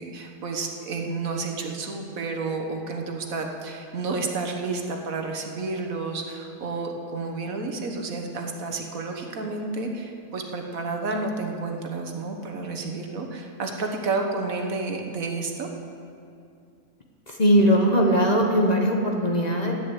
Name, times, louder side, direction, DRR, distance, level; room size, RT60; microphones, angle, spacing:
voice 1, 0.0-15.7, right 3 dB, 70° right, 3 dB, 1.6 m, -30 dB
voice 2, 17.3-19.7, equal, 30° left, 1 dB, 1.1 m, -20 dB
11.0 x 9.4 x 8.1 m, 2.4 s
omnidirectional pair, 1.5 m